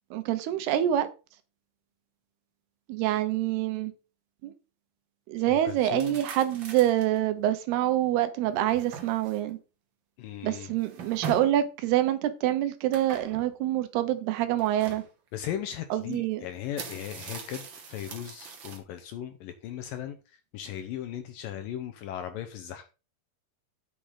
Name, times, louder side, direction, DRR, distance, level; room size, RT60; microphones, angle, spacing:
voice 1, 0.1-1.1 2.9-3.9 4.4-4.5 5.3-9.6 10.4-15.0 15.9-16.4, right 12 dB, 85° right, 2.9 m, -26 dB
voice 2, 5.5-6.2 10.2-10.7 15.3-22.9, left 10 dB, 75° left, 2.2 m, -37 dB
sound 1, 5.9-7.2 7.7-7.8 8.4-9.5 10.7-11.6 12.9-13.5 14.6-15.1 16.1-16.2 16.6-18.8, right 5 dB, 65° right, 1.2 m, -41 dB
8.4 x 5.1 x 5.6 m
omnidirectional pair, 4.5 m